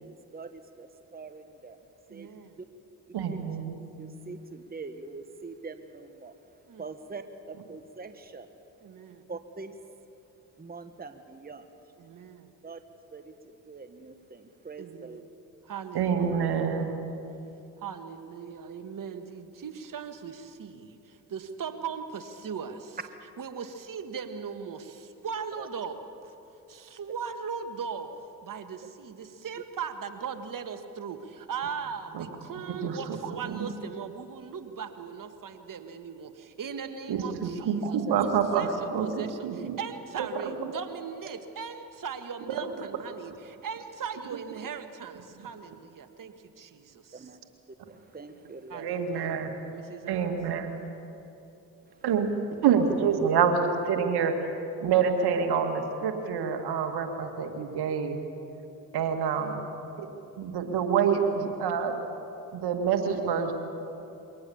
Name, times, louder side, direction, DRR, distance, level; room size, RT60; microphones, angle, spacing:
voice 1, 0.0-1.8 2.1-2.3 2.6-2.7 3.1-3.4 4.0-6.3 6.8-8.5 9.3-9.7 10.6-11.7 12.6-12.8 13.1-13.3 13.6-15.2 25.6-25.7 38.1-38.2 47.1-47.4 47.7-49.0 51.9-52.0, right 4 dB, 20° right, 8 dB, 1.4 m, -43 dB
voice 2, 2.1-2.6 6.7-6.8 8.8-9.2 12.0-12.5 14.8-15.3 15.7-17.0 17.8-23.0 23.4-26.3 26.7-28.1 28.4-47.3 48.7-50.3, right 6 dB, 50° right, 8 dB, 1.8 m, -39 dB
voice 3, 3.1-3.8 15.9-16.9 32.1-32.3 32.7-33.7 37.1-39.8 40.2-40.4 48.8-49.5 50.1-50.7 52.0-52.3 52.6-54.5 54.8-58.2 58.9-59.6 60.0-60.1 60.4-62.0 62.5-63.5, right 7 dB, 70° right, 5 dB, 2.1 m, -27 dB
23.0 x 18.5 x 7.1 m, 2.9 s
hypercardioid pair, 50°, 41 cm